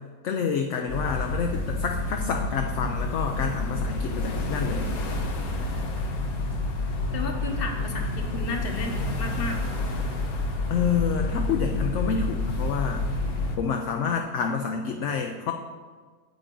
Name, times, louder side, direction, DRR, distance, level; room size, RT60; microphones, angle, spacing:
voice 1, 0.2-4.9 10.7-13.0 13.6-15.5, left 6 dB, 65° left, 3 dB, 0.9 m, -28 dB
sound 1, 0.9-13.6, left 2 dB, 85° left, 1.6 m, -29 dB
voice 2, 7.1-9.6, left 4 dB, 45° left, 3 dB, 1.2 m, -33 dB
9.1 x 8.4 x 3.8 m, 1.5 s
omnidirectional pair, 1.5 m